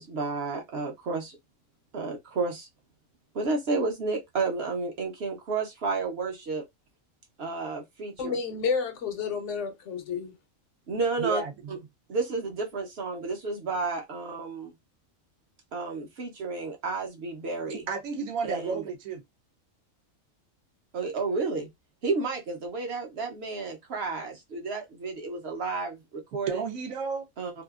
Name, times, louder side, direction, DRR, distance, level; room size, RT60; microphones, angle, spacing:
voice 1, 0.0-1.4 1.9-2.7 3.3-6.6 7.4-8.4 10.9-11.4 11.7-11.8 12.1-14.7 15.7-17.9 18.4-18.8 20.9-21.7 22.0-26.7 27.4-27.5, right 3 dB, 55° right, 0.8 m, -31 dB
voice 2, 8.2-10.3, left 5 dB, 70° left, 0.8 m, -30 dB
voice 3, 11.2-11.5 17.7-19.2 26.5-27.3, right 5 dB, 85° right, 1.0 m, -32 dB
2.7 x 2.4 x 2.3 m
omnidirectional pair, 1.4 m